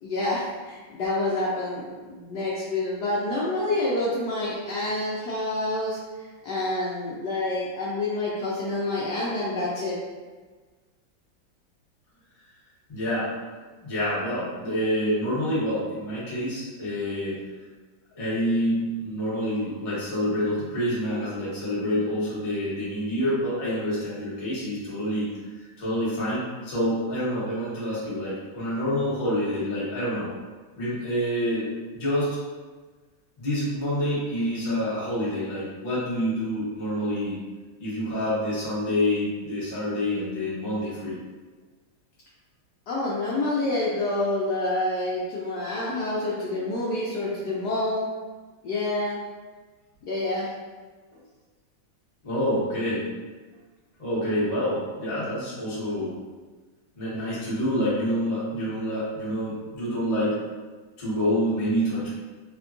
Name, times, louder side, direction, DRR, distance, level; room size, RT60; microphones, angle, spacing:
voice 1, 0.0-6.0 6.4-10.0 42.9-48.1 48.6-49.2 50.1-50.5, left 2 dB, 70° left, -7 dB, 1.0 m, -27 dB
voice 2, 12.9-13.3 13.8-17.4 18.1-25.3 25.8-30.3 30.8-31.7 31.9-32.4 33.4-37.4 37.8-41.1 52.2-53.0 54.0-56.2 56.9-60.4 61.0-62.1, equal, 30° left, -9 dB, 0.6 m, -27 dB
3.5 x 2.2 x 2.5 m, 1.3 s
omnidirectional pair, 2.1 m